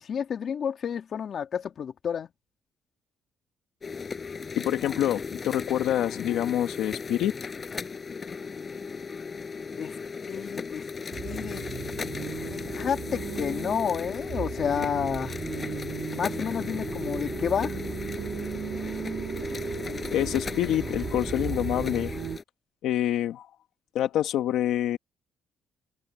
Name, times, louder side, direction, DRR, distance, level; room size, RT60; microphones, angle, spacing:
voice 1, 0.0-2.3 9.7-9.9 10.3-10.8 11.2-11.6 12.5-15.4 16.1-17.8, left 7 dB, 55° left, 2.8 m, -30 dB
sound 1, 3.8-22.4, left 5 dB, 35° left, 6.0 m, -36 dB
voice 2, 4.6-7.4 20.1-22.1 22.8-23.5 24.0-25.0, left 12 dB, 85° left, 1.6 m, -26 dB
sound 2, 11.1-22.4, right 8 dB, 60° right, 1.9 m, -36 dB
open air
cardioid pair, 90°, 0 cm